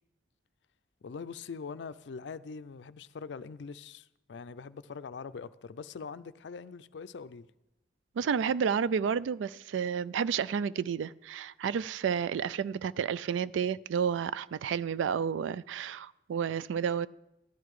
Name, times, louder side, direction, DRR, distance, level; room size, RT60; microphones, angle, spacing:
voice 1, 1.0-7.5, left 5 dB, 75° left, 0.4 m, -43 dB
voice 2, 8.2-17.1, right 7 dB, 90° right, 0.3 m, -31 dB
13.5 x 11.0 x 4.7 m
head